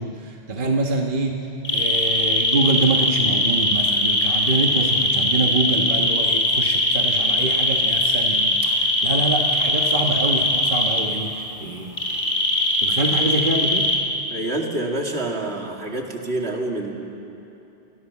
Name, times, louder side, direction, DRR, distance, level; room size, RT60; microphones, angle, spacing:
voice 1, 0.0-1.3 1.7-12.0 12.5-13.9, right 2 dB, 55° right, 1 dB, 1.5 m, -25 dB
sound 1, 1.6-11.0 12.0-14.0, left 1 dB, 60° left, 4.1 m, -20 dB
voice 2, 14.3-16.9, right 2 dB, 80° right, 0 dB, 2.8 m, -27 dB
28.0 x 21.0 x 7.2 m, 2.9 s
omnidirectional pair, 1.1 m